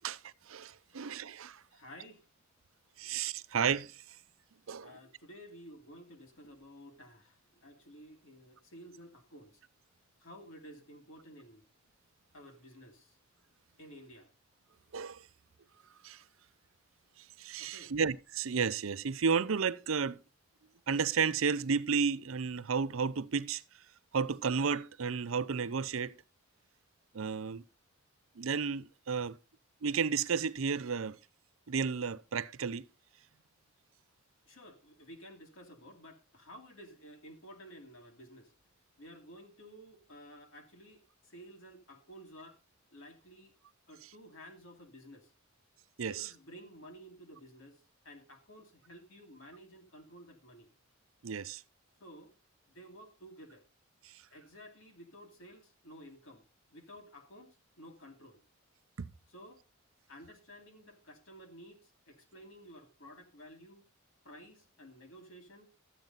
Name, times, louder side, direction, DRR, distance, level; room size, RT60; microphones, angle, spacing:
voice 1, 0.0-1.6 3.0-4.0 4.7-4.9 14.9-15.2 16.0-16.2 17.4-20.2 20.9-23.6 24.1-26.1 27.1-27.6 28.4-29.4 29.8-31.2 31.7-32.9 46.0-46.3 51.2-51.6 59.0-59.1, right 6 dB, 75° right, 0.6 m, -32 dB
voice 2, 1.7-2.3 3.0-3.1 4.8-9.6 10.2-11.6 12.3-13.2 13.8-14.3 17.6-17.9 34.5-38.5 39.0-42.6 42.9-43.5 43.9-45.3 46.1-50.7 52.0-52.3 52.7-53.6 54.3-56.4 56.7-58.4 59.3-59.6 60.1-63.8 64.2-65.7, equal, 70° left, 2.3 m, -53 dB
13.0 x 9.0 x 3.9 m
head